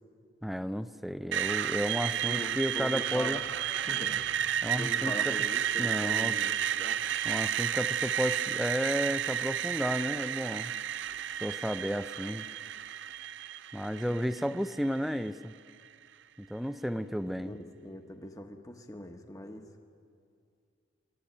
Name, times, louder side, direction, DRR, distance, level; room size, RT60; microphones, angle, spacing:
voice 1, 0.4-3.4 4.6-5.4 5.8-6.3 7.2-10.7 11.4-12.5 13.7-15.5 16.4-17.5, equal, ahead, 12 dB, 0.5 m, -32 dB
Screech, 1.3-15.3, right 10 dB, 65° right, 0.4 m, -32 dB
voice 2, 2.0-3.5 3.8-7.0 17.4-17.6 17.8-19.6, left 1 dB, 20° left, 5 dB, 1.3 m, -42 dB
26.0 x 12.0 x 9.0 m, 2.4 s
head